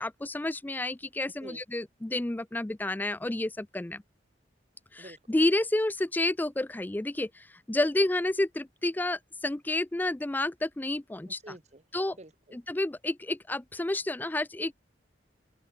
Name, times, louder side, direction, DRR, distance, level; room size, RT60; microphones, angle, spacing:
voice 1, 0.0-4.0 4.9-11.4 11.9-12.2 12.5-14.7, left 2 dB, 10° left, 0.4 m, -30 dB
voice 2, 11.3-11.8 12.1-12.6, right 1 dB, 40° right, 1.7 m, -48 dB
open air
head